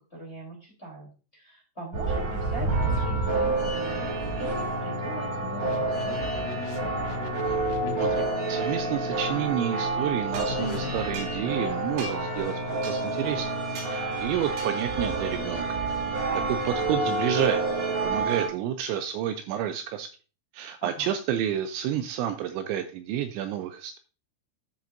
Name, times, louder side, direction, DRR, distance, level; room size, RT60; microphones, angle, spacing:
voice 1, 0.1-6.5 16.3-16.5 20.8-21.1, right 1 dB, 15° left, -3 dB, 2.7 m, -41 dB
sound 1, 1.9-18.5, right 2 dB, 45° right, 4.1 m, -28 dB
sound 2, 5.6-8.3 10.3-11.1, left 4 dB, 90° left, 4.0 m, -38 dB
voice 2, 8.0-13.5 13.9-15.8 16.1-16.2 16.5-20.1 20.5-24.0, right 10 dB, 85° right, 9 dB, 2.8 m, -30 dB
sound 3, 10.3-11.7 12.0-12.4 12.8-13.3 13.7-14.0 14.6-15.1, right 2 dB, 65° right, 3.7 m, -41 dB
10.5 x 7.5 x 2.6 m, 0.34 s
omnidirectional pair, 5.6 m